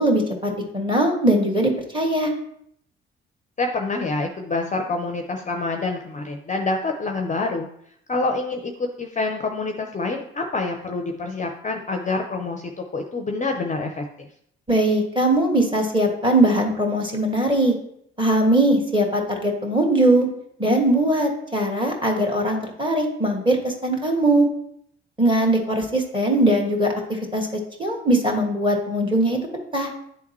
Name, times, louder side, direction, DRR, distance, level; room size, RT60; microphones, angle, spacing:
voice 1, 0.0-2.3 14.7-17.7 18.2-20.3 20.6-24.5 25.2-26.9 27.3-27.5 27.8-29.9, right 1 dB, 15° right, 2 dB, 1.7 m, -20 dB
voice 2, 3.6-7.7 8.1-14.3, left 3 dB, 25° left, 4 dB, 0.6 m, -27 dB
10.0 x 3.5 x 3.1 m, 0.69 s
figure-of-eight pair, 45°, 30 cm